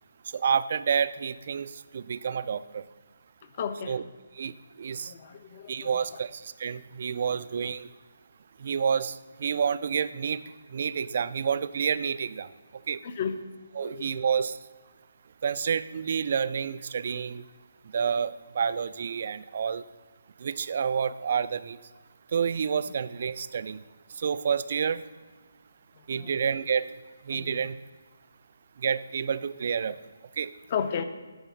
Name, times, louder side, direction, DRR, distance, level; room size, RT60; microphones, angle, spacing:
voice 1, 0.3-2.8 3.9-4.0 4.4-5.1 5.7-7.9 8.6-10.4 10.7-12.5 12.9-13.0 13.7-14.6 15.4-17.4 17.9-19.8 20.4-21.8 22.3-23.8 24.2-25.0 26.1-26.9 27.3-27.8 28.8-30.0 30.4-30.5, right 7 dB, 35° right, 15 dB, 0.3 m, -29 dB
voice 2, 3.6-3.9 5.0-5.9 7.6-7.7 13.0-13.4 13.8-14.2 26.1-26.3 27.3-27.6 30.7-31.0, left 7 dB, 20° left, 10 dB, 0.5 m, -33 dB
11.5 x 4.0 x 6.9 m, 1.3 s
hypercardioid pair, 180°, 0 cm